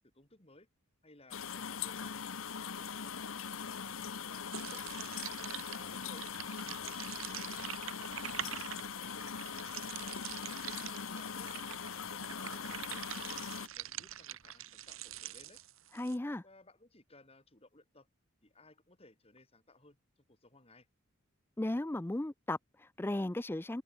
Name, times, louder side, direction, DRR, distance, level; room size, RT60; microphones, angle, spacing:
voice 1, 0.1-0.7 1.0-2.2 4.3-4.8 5.7-6.3 6.6-7.7 10.7-13.1 13.5-15.6 16.4-18.1 18.4-20.0 20.3-20.9, left 2 dB, 25° left, 3.2 m, -61 dB
sound 1, 1.3-13.7, left 6 dB, 70° left, 1.0 m, -41 dB
sound 2, 4.5-16.2, right 11 dB, 70° right, 1.9 m, -45 dB
voice 2, 15.9-16.4 21.6-23.8, left 1 dB, 10° left, 0.4 m, -36 dB
head